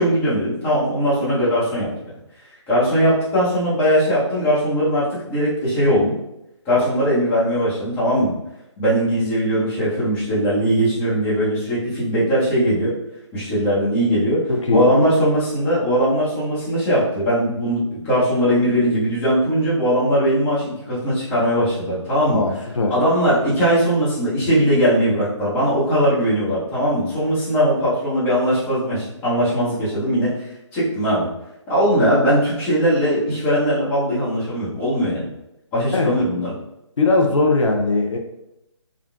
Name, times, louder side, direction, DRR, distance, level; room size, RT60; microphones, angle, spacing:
voice 1, 0.0-1.9 2.7-6.1 6.6-8.3 8.8-12.9 13.3-14.4 14.7-22.4 22.9-30.3 30.7-31.3 31.7-35.3 35.7-36.5, equal, 15° left, -10 dB, 0.9 m, -19 dB
voice 2, 14.5-14.9 22.3-23.0 35.9-36.1 37.0-38.2, left 3 dB, 90° left, 2 dB, 0.6 m, -19 dB
3.6 x 2.2 x 2.3 m, 0.86 s
hypercardioid pair, 155°, 16 cm